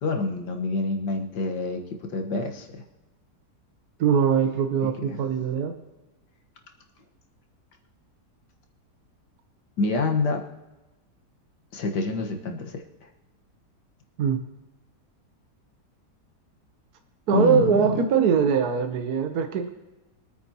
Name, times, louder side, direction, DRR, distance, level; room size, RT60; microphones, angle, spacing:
voice 1, 0.0-1.8 2.1-2.8 5.1-5.2 9.8-10.4 11.7-12.8 17.3-17.9, left 3 dB, 85° left, 3 dB, 2.1 m, -27 dB
voice 2, 4.0-5.7 14.2-14.4 17.3-19.7, right 7 dB, 70° right, 6 dB, 1.3 m, -22 dB
24.0 x 9.3 x 2.9 m, 1.1 s
omnidirectional pair, 1.8 m